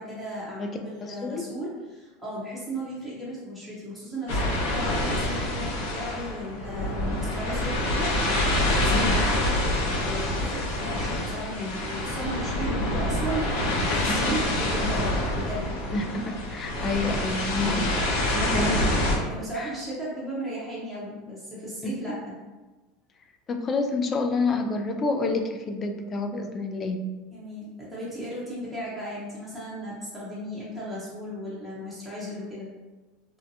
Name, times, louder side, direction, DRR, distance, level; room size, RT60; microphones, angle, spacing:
voice 1, 0.0-15.7 18.5-18.7 19.3-22.4 27.3-32.7, equal, ahead, -9 dB, 0.7 m, -36 dB
voice 2, 1.0-1.5 8.9-9.2 14.1-14.3 15.9-18.0 18.3-18.9 19.6-19.7 21.8-22.0 23.5-27.1, left 3 dB, 30° left, 5 dB, 0.3 m, -28 dB
sound 1, 4.3-19.2, left 1 dB, 75° left, 0.8 m, -26 dB
2.7 x 2.1 x 2.6 m, 1.2 s
supercardioid pair, 115°, 0 cm